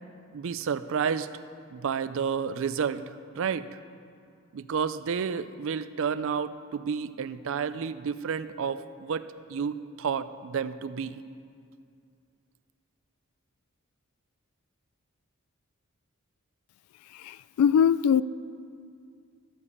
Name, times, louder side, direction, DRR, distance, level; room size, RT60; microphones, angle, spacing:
voice 1, 0.3-1.3 1.7-3.7 4.5-11.2, right 6 dB, 60° right, 14 dB, 0.4 m, -31 dB
voice 2, 17.6-18.2, left 8 dB, 85° left, 16 dB, 0.3 m, -20 dB
13.0 x 5.2 x 8.3 m, 2.3 s
head